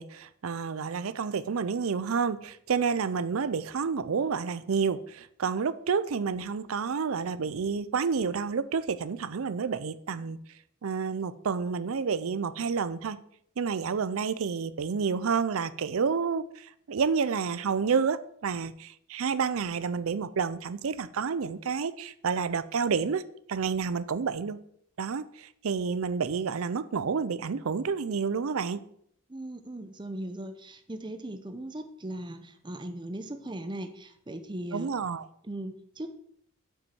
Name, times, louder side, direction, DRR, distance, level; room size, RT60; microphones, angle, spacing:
voice 1, 0.0-10.4 10.8-13.2 13.6-23.2 23.5-24.6 25.0-28.8 34.7-35.3, right 5 dB, 70° right, 0.5 m, -29 dB
voice 2, 29.3-34.9 35.4-36.1, right 1 dB, 20° right, 0.7 m, -38 dB
7.4 x 5.4 x 7.0 m
head